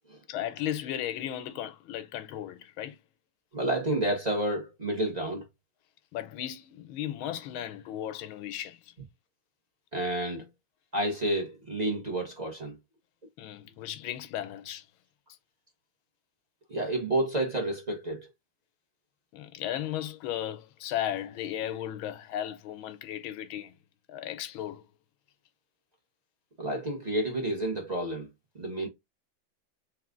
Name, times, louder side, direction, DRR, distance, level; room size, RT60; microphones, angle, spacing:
voice 1, 0.3-3.0 6.1-8.9 13.4-14.8 19.3-23.7 24.1-24.8, left 11 dB, 90° left, 1.5 m, -35 dB
voice 2, 3.5-5.4 9.9-10.5 10.9-12.8 16.7-18.3 26.6-28.3 28.5-28.9, right 1 dB, 25° right, 1.1 m, -30 dB
3.6 x 3.0 x 3.7 m
omnidirectional pair, 2.2 m